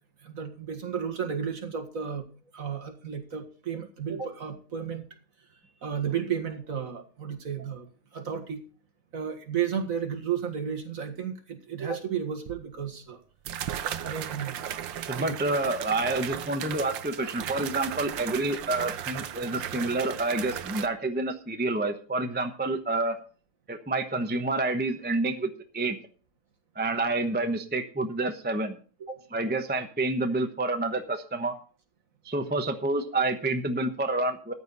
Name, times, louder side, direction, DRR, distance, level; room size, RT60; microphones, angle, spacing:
voice 1, 0.2-2.3 2.5-5.1 5.8-8.6 9.1-13.2 14.0-14.7 15.2-15.4 29.0-29.2, right 7 dB, 45° right, 4 dB, 2.0 m, -33 dB
sound 1, 12.5-12.6 13.5-20.9, right 10 dB, 75° right, 1.6 m, -35 dB
voice 2, 15.0-23.2 23.7-26.0 26.8-28.8 29.3-31.5 32.2-34.5, right 2 dB, 10° right, 6 dB, 0.7 m, -28 dB
14.0 x 9.5 x 4.1 m, 0.40 s
omnidirectional pair, 2.1 m